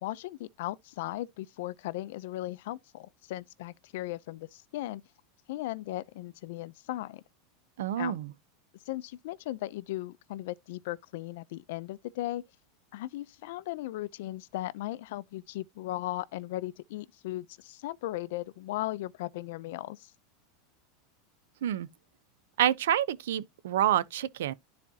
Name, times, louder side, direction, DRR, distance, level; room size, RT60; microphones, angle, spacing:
voice 1, 0.0-5.0 5.5-7.2 8.0-8.2 8.9-12.4 12.9-20.1, left 16 dB, 60° left, 0.5 m, -37 dB
voice 2, 7.8-8.3 21.6-21.9 22.6-24.5, right 11 dB, 85° right, 0.7 m, -28 dB
12.5 x 4.2 x 2.8 m
supercardioid pair, 175°, 0 cm